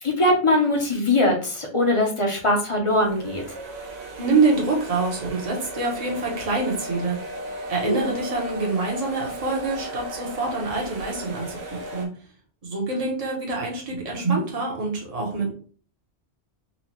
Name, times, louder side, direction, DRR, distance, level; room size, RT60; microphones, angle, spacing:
voice 1, 0.0-3.4 7.8-8.1 12.9-13.1, left 1 dB, 30° left, 1 dB, 0.8 m, -21 dB
sound 1, 2.9-12.1, right 1 dB, 70° right, 1.0 m, -36 dB
voice 2, 4.2-7.2 7.7-12.1 12.6-15.5, right 3 dB, 35° right, -2 dB, 1.0 m, -25 dB
4.1 x 2.4 x 3.0 m, 0.42 s
omnidirectional pair, 1.1 m